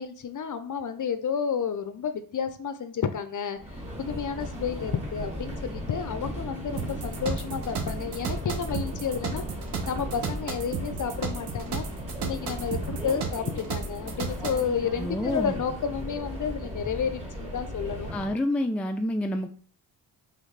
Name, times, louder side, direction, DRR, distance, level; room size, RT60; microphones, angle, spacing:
voice 1, 0.0-3.6 4.0-9.4 9.9-11.8 12.2-18.1, left 7 dB, 45° left, 10 dB, 0.6 m, -31 dB
Subway metro underground, 3.6-18.4, equal, 15° right, 1.9 m, -37 dB
sound 1, 6.6-16.7, right 2 dB, 50° right, 1.5 m, -54 dB
sound 2, 6.8-14.7, right 5 dB, 75° right, 0.9 m, -34 dB
voice 2, 15.0-15.5 18.1-19.5, left 1 dB, 5° left, 6 dB, 0.3 m, -28 dB
4.0 x 3.6 x 3.3 m, 0.44 s
cardioid pair, 90°, 42 cm